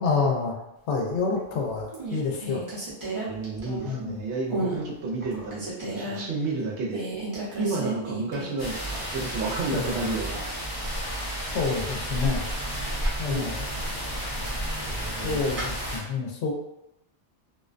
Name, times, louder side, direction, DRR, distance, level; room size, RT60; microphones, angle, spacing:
voice 1, 0.0-2.6 3.8-4.2 9.7-10.1 11.5-12.5 13.2-13.7 15.2-16.5, left 4 dB, 75° left, 1 dB, 0.8 m, -28 dB
sound 1, 1.1-1.5 1.9-4.1 4.5-4.8 5.2-6.2 6.9-8.7 9.0-9.1 12.6-13.3 14.2-15.7, right 2 dB, 30° right, 0.8 m, -34 dB
voice 2, 3.2-7.1 7.6-10.4 13.2-13.5 14.8-15.4, right 3 dB, 80° right, -2 dB, 0.9 m, -31 dB
sound 2, 8.6-16.0, equal, 25° left, 0.7 m, -31 dB
2.4 x 2.1 x 2.4 m, 0.86 s
omnidirectional pair, 1.2 m